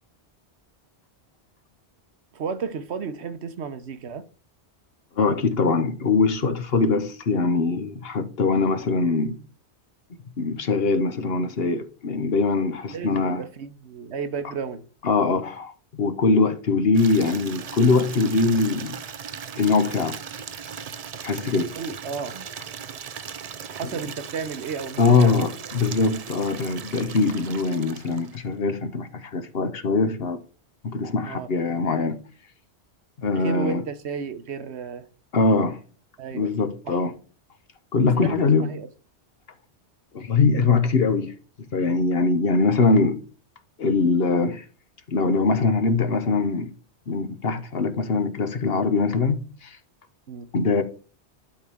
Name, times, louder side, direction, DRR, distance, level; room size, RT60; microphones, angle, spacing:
voice 1, 2.3-4.2 12.9-14.8 21.7-22.3 23.7-25.5 31.3-31.5 33.4-35.1 36.2-36.5 36.8-37.0 38.2-38.9 50.3-50.5, right 6 dB, 70° right, 1.1 m, -33 dB
voice 2, 5.2-9.4 10.4-13.4 15.0-19.0 19.6-20.2 21.2-21.7 25.0-30.4 30.8-32.2 33.2-33.8 35.3-35.8 36.3-37.1 37.9-38.7 40.1-41.3 41.7-43.2 43.8-44.6 45.1-46.7 47.1-49.8 50.5-50.8, left 4 dB, 60° left, 1.2 m, -22 dB
Water tap faucet / Liquid, 16.9-28.5, right 7 dB, 50° right, 0.5 m, -38 dB
11.5 x 4.3 x 3.5 m
omnidirectional pair, 1.2 m